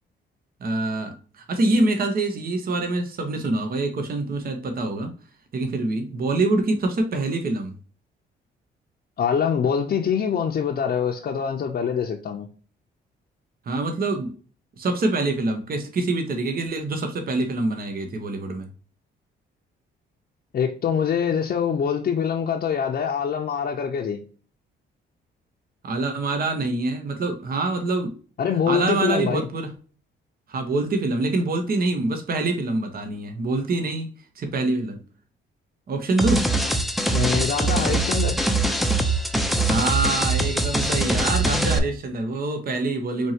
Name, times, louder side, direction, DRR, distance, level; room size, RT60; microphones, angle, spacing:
voice 1, 0.6-5.1 5.5-7.7 13.7-14.3 14.8-18.7 25.8-28.1 28.7-29.7 30.5-34.1 34.4-35.0 35.9-36.5 39.7-43.3, right 2 dB, 50° right, 1.0 m, -25 dB
voice 2, 9.2-12.5 20.5-24.2 28.4-29.5 37.1-38.4, left 7 dB, 50° left, 0.7 m, -24 dB
sound 1, 36.2-41.8, right 2 dB, ahead, 0.6 m, -22 dB
4.4 x 3.0 x 2.8 m
cardioid pair, 90°, 20 cm